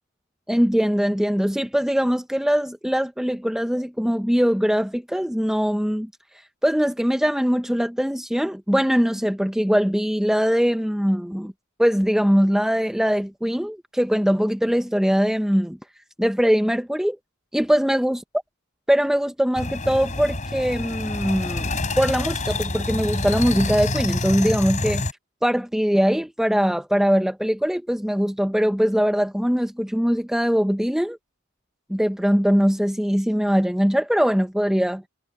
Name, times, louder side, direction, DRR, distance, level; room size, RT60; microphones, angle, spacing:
voice 1, 0.5-6.1 6.6-11.5 11.8-15.8 16.2-17.2 17.5-18.2 18.9-25.1 25.4-31.2 31.9-35.0, equal, ahead, 0.7 m, -21 dB
sound 1, 19.6-25.1, left 2 dB, 35° left, 4.9 m, -27 dB
head